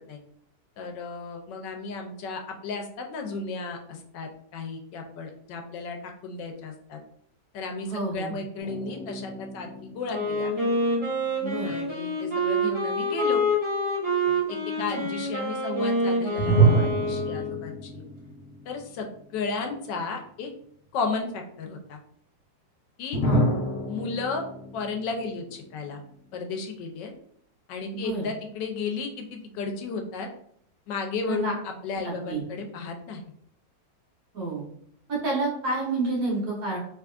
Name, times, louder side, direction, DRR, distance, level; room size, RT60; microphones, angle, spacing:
voice 1, 0.8-6.0 6.2-7.0 7.5-10.5 11.6-13.4 14.3-18.0 18.7-20.5 20.9-22.0 23.0-23.2 23.9-24.4 24.7-26.0 26.3-27.1 27.7-30.3 30.9-33.2, left 4 dB, 85° left, 3 dB, 1.3 m, -34 dB
voice 2, 7.8-8.4 11.4-11.7 14.9-15.1 23.2-23.4 27.9-28.3 31.3-31.5 31.9-32.4 34.3-34.7 35.1-36.8, right 3 dB, 60° right, -3 dB, 1.4 m, -29 dB
sound 1, 8.6-11.9 16.4-19.4 19.7-19.8 23.1-26.4, right 3 dB, 45° left, 0.9 m, -28 dB
Wind instrument woodwind instrument, 10.1-17.7, equal, 15° right, 1.4 m, -27 dB
3.5 x 3.0 x 2.4 m, 0.66 s
omnidirectional pair, 1.9 m